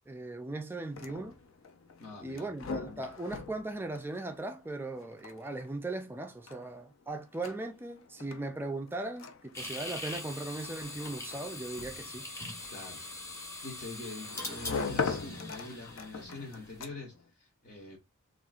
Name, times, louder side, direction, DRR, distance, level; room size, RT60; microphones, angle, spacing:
voice 1, 0.1-1.4 2.2-12.3, right 2 dB, 10° right, 0.3 m, -38 dB
sound 1, 0.7-17.3, left 4 dB, 65° left, 0.5 m, -42 dB
voice 2, 2.0-2.5 12.7-13.0 13.6-18.0, left 2 dB, 45° left, 0.8 m, -45 dB
sound 2, 9.5-16.8, left 2 dB, 10° left, 0.7 m, -42 dB
3.9 x 2.4 x 2.4 m
head